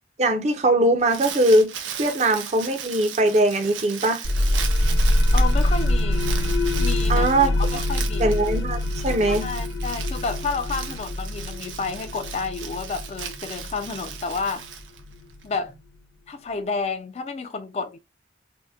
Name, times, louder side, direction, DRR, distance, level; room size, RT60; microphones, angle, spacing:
voice 1, 0.2-1.7 2.0-4.2 7.1-7.6 8.2-9.5, right 1 dB, 35° right, 0.5 m, -21 dB
Crumpling crinkling, 0.8-15.4, right 8 dB, 90° right, 0.5 m, -37 dB
sound 1, 4.2-15.6, left 1 dB, 75° left, 0.8 m, -24 dB
voice 2, 5.3-6.4 6.7-7.3 7.6-8.4 9.3-14.6 15.4-15.7 16.3-18.0, left 4 dB, 35° left, 0.3 m, -30 dB
2.7 x 2.0 x 2.3 m
head